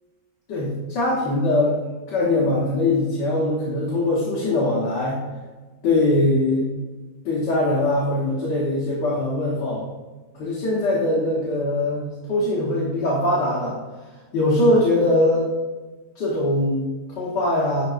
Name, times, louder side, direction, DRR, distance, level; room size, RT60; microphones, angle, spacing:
voice 1, 0.5-1.8 2.1-5.2 5.8-6.7 7.3-9.8 10.4-13.8 14.3-15.5 16.2-17.8, left 1 dB, 80° left, -6 dB, 1.9 m, -22 dB
11.0 x 4.1 x 2.5 m, 1.3 s
omnidirectional pair, 1.8 m